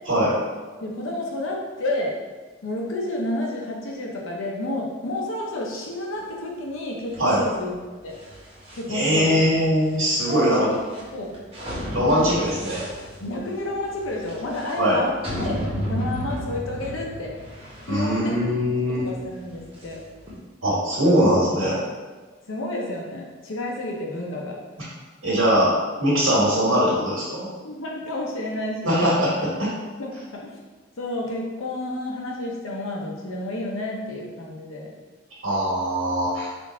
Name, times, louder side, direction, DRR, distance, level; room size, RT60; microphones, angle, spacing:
voice 1, 0.8-2.2 2.6-7.7 8.0-8.2 8.7-9.3 10.3-10.7 11.1-11.3 12.1-12.3 13.2-15.1 15.4-17.3 17.8-18.3 18.7-20.0 22.4-24.6 27.6-29.1 30.0-30.6 31.0-34.9, left 1 dB, 85° left, -1 dB, 0.7 m, -30 dB
sound 1, 7.1-20.4, equal, 25° right, 1.0 m, -35 dB
voice 2, 8.9-10.7 11.9-12.8 14.8-15.0 17.9-19.1 20.6-21.8 25.2-25.7 26.0-27.5 28.8-29.3 29.6-29.7 35.4-36.5, equal, 90° right, -7 dB, 1.4 m, -21 dB
3.6 x 2.5 x 3.8 m, 1.3 s
head